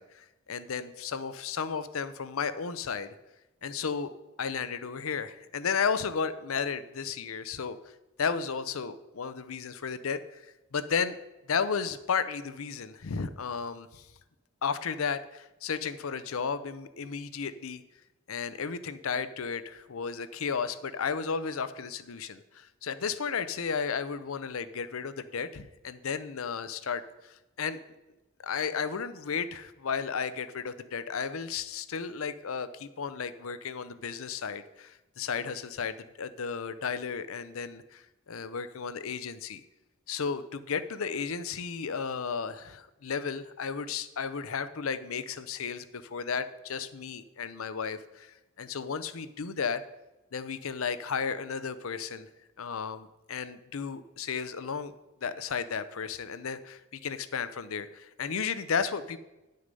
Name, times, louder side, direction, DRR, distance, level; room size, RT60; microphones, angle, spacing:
voice 1, 0.0-3.1 3.6-4.1 4.4-7.8 8.2-11.2 11.5-14.1 14.6-17.8 18.3-27.8 28.4-39.6 40.1-49.8 50.3-52.3 52.6-54.9 55.2-59.2, left 6 dB, 80° left, 12 dB, 0.6 m, -34 dB
9.8 x 6.5 x 5.3 m, 1.0 s
head